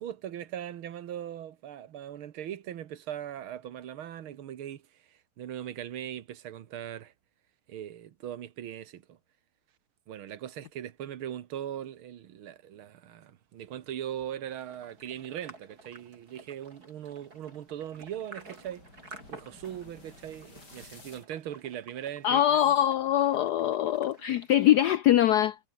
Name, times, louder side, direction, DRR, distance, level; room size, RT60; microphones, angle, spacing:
voice 1, 0.0-4.8 5.4-7.1 7.7-9.2 10.1-18.9 19.3-22.6, right 10 dB, 75° right, 2.0 m, -40 dB
sound 1, 13.7-21.3, left 2 dB, 50° left, 6.5 m, -57 dB
sound 2, 14.5-24.9, right 2 dB, 45° right, 6.2 m, -53 dB
voice 2, 22.2-25.6, left 12 dB, 75° left, 0.9 m, -23 dB
omnidirectional pair, 2.3 m